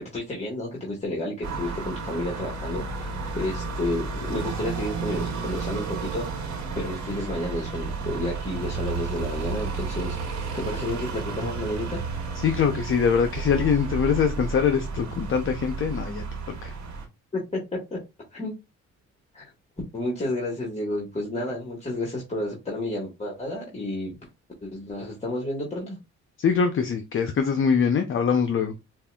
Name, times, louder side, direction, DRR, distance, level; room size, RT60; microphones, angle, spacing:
voice 1, 0.1-12.0 17.3-18.0 18.3-18.5 19.3-19.5 19.9-24.2 24.6-26.0, left 1 dB, 20° left, 1.5 m, -31 dB
sound 1, 1.4-17.1, right 4 dB, 70° right, 1.5 m, -32 dB
voice 2, 12.4-16.2 16.6-16.7 26.4-28.7, left 6 dB, 45° left, 0.6 m, -23 dB
5.3 x 2.5 x 2.3 m
cardioid pair, 90°, 30 cm